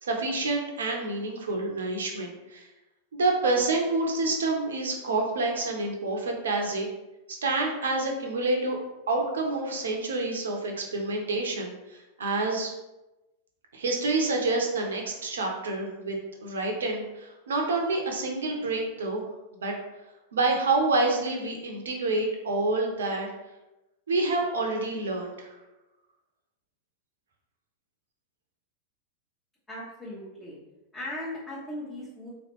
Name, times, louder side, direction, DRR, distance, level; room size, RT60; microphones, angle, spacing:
voice 1, 0.0-2.7 3.1-6.9 7.4-8.8 9.1-12.7 13.7-19.2 19.6-19.7 20.3-23.3 24.1-25.5, right 3 dB, 65° right, 2 dB, 0.8 m, -28 dB
voice 2, 29.7-30.6 30.9-32.3, left 1 dB, 10° left, -9 dB, 1.1 m, -38 dB
3.9 x 3.1 x 3.0 m, 0.99 s
figure-of-eight pair, 90°, 0 cm